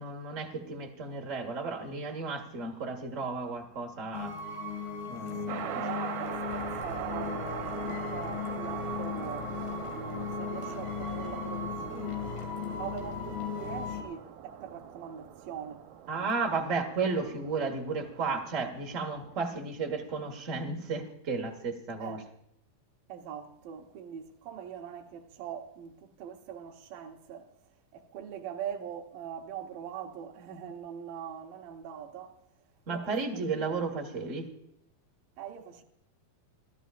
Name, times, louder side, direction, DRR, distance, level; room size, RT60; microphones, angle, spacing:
voice 1, 0.0-4.4 5.1-5.7 16.1-22.2 32.9-34.4, right 4 dB, 55° right, 0.8 m, -33 dB
sound 1, 4.1-14.0, left 5 dB, 80° left, 4.4 m, -36 dB
voice 2, 5.5-12.2 12.6-15.9 19.4-19.5 22.0-22.3 23.1-27.5 27.9-32.3 32.9-33.7 35.4-35.8, right 8 dB, 70° right, 2.8 m, -42 dB
sound 2, 5.5-19.4, right 9 dB, 90° right, 3.0 m, -43 dB
28.0 x 13.0 x 2.5 m
omnidirectional pair, 4.4 m